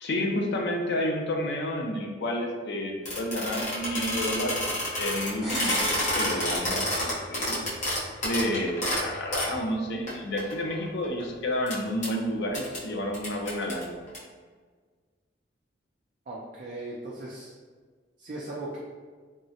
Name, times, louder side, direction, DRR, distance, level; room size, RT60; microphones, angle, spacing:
voice 1, 0.0-4.7 5.0-5.8 6.1-7.6 8.2-13.9, left 1 dB, 60° left, 2 dB, 0.4 m, -30 dB
sound 1, 3.1-9.5 10.1-10.2 10.4-11.2 11.7-11.8 12.0-12.1 12.5-12.8 13.1-14.2, left 1 dB, 40° left, 0.8 m, -29 dB
sound 2, 5.4-7.3 7.6-7.7, equal, ahead, 0.9 m, -39 dB
voice 2, 16.3-17.5 18.2-18.8, right 2 dB, 45° right, -5 dB, 0.4 m, -38 dB
3.5 x 2.1 x 2.7 m, 1.5 s
head